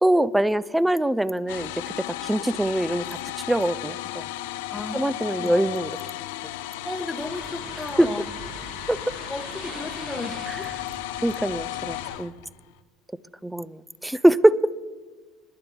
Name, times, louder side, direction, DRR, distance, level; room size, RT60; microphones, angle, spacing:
voice 1, 0.0-1.7 2.1-3.1 3.5-4.2 4.9-5.9 8.0-8.1 8.9-9.2 10.5-10.6 11.2-12.3 13.4-14.6, right 1 dB, 5° right, 18 dB, 0.5 m, -23 dB
sound 1, 1.5-12.7, left 15 dB, 70° left, 0.5 m, -35 dB
voice 2, 4.7-5.5 6.8-8.2 9.3-10.6, left 2 dB, 15° left, 5 dB, 1.1 m, -34 dB
sound 2, 7.2-12.2, right 2 dB, 60° right, 4.7 m, -42 dB
28.5 x 11.5 x 2.4 m, 1.4 s
hypercardioid pair, 65°, 0 cm